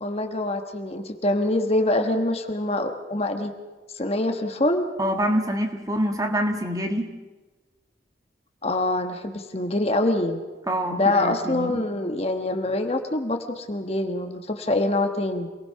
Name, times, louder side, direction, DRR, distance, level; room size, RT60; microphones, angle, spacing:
voice 1, 0.0-3.5 3.9-4.9 8.6-10.4 10.9-15.5, left 2 dB, 30° left, 5 dB, 1.4 m, -25 dB
voice 2, 5.0-7.1 10.7-11.8, equal, 20° right, 4 dB, 1.7 m, -26 dB
27.0 x 19.5 x 5.8 m, 1.2 s
head